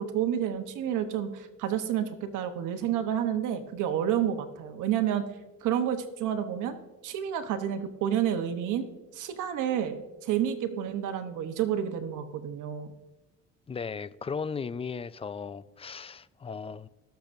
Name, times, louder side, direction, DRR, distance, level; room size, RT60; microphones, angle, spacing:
voice 1, 0.0-5.2 5.6-6.8 7.0-8.9 9.1-12.9, right 9 dB, 90° right, 1.0 m, -29 dB
voice 2, 13.7-16.9, left 5 dB, 20° left, 0.3 m, -36 dB
19.0 x 6.9 x 2.6 m
cardioid pair, 90°, 30 cm